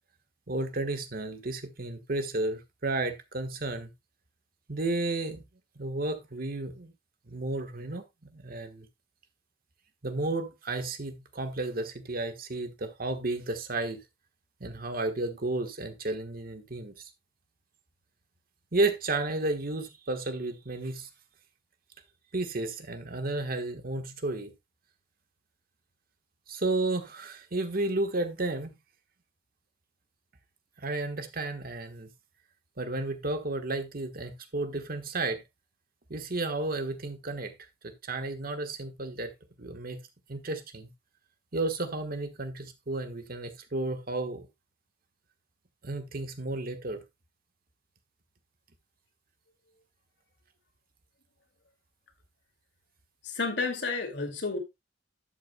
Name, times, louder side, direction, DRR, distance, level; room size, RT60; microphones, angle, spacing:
voice 1, 0.5-3.9 4.7-5.4 5.8-6.9 7.3-8.9 10.0-14.0 14.6-17.1 18.7-21.1 22.3-24.5 26.5-28.7 30.8-32.1 32.8-35.4 36.1-37.5 37.8-39.3 39.6-40.0 40.3-40.9 41.5-44.5 45.8-47.0, right 2 dB, 50° right, 1.3 m, -32 dB
voice 2, 53.3-54.6, left 4 dB, 65° left, 2.3 m, -30 dB
11.5 x 8.2 x 2.2 m
head